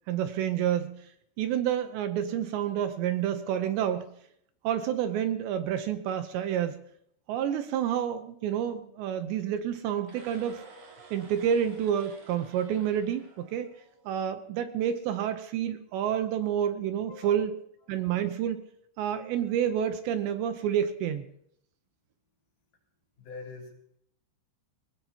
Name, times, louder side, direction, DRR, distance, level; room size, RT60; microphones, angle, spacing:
voice 1, 0.1-1.0 1.4-4.1 4.6-6.8 7.3-10.6 11.1-13.7 14.1-17.5 17.9-18.6 19.0-21.3, right 9 dB, 80° right, 9 dB, 2.9 m, -29 dB
sound 1, 10.0-14.2, right 3 dB, 60° right, 4.4 m, -52 dB
voice 2, 17.1-17.5 18.0-18.1 23.2-24.0, left 4 dB, 55° left, -2 dB, 5.0 m, -45 dB
20.5 x 19.5 x 2.9 m, 0.69 s
omnidirectional pair, 5.4 m